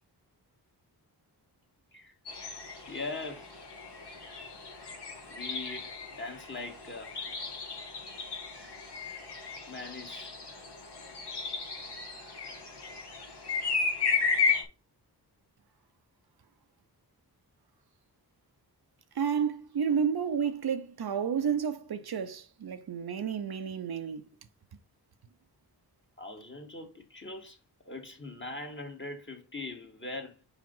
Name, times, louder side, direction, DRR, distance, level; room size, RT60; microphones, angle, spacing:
sound 1, 2.3-14.6, left 5 dB, 90° left, 2.2 m, -34 dB
voice 1, 2.9-3.5 5.3-7.1 9.7-10.4 19.4-19.5 26.2-27.6 27.8-30.4, left 2 dB, 30° left, 2.0 m, -41 dB
voice 2, 19.2-24.2, right 7 dB, 70° right, 0.9 m, -31 dB
5.2 x 5.0 x 5.4 m
wide cardioid pair, 105°, 39 cm